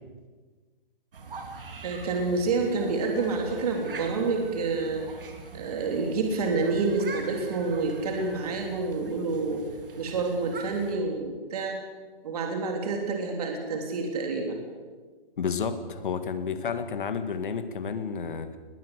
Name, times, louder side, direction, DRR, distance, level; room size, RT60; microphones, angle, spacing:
sound 1, 1.1-11.0, right 4 dB, 65° right, 3.7 m, -43 dB
voice 1, 1.8-5.1 5.5-9.7 10.0-11.8 12.2-14.6, right 3 dB, 40° right, 2 dB, 3.5 m, -28 dB
voice 2, 15.4-18.6, left 6 dB, 60° left, 9 dB, 2.1 m, -31 dB
21.0 x 16.5 x 8.3 m, 1.4 s
hypercardioid pair, 170°, 29 cm